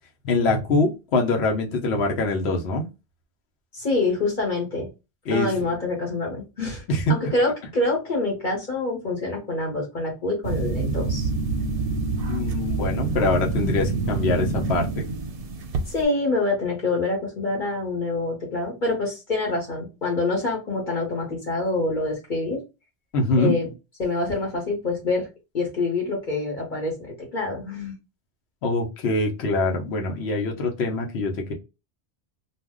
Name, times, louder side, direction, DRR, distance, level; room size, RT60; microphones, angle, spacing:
voice 1, 0.2-2.9 5.3-5.5 6.9-7.0 12.3-15.1 23.1-23.5 28.6-31.5, left 2 dB, 70° left, 1.0 m, -24 dB
voice 2, 3.7-4.9 5.3-6.8 7.1-11.3 15.9-22.6 23.4-23.7 24.0-25.3 25.5-27.9, left 2 dB, 45° left, 1.1 m, -26 dB
sound 1, 10.4-16.0, right 3 dB, 65° right, 0.7 m, -26 dB
2.5 x 2.1 x 3.5 m
omnidirectional pair, 1.1 m